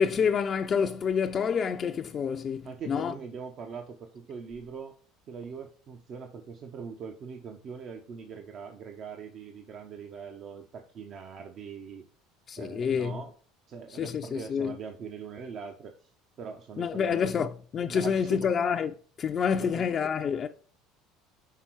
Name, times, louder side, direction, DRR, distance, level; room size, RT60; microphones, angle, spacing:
voice 1, 0.0-3.1 12.5-13.2 13.9-14.7 16.8-18.9 19.2-20.5, left 7 dB, 40° left, 0.4 m, -28 dB
voice 2, 2.6-4.9 5.3-12.0 12.5-13.3 13.7-16.1 16.4-17.5 17.9-18.5 19.6-19.8, right 6 dB, 50° right, 0.7 m, -42 dB
5.7 x 3.7 x 4.5 m
hypercardioid pair, 80°, 0 cm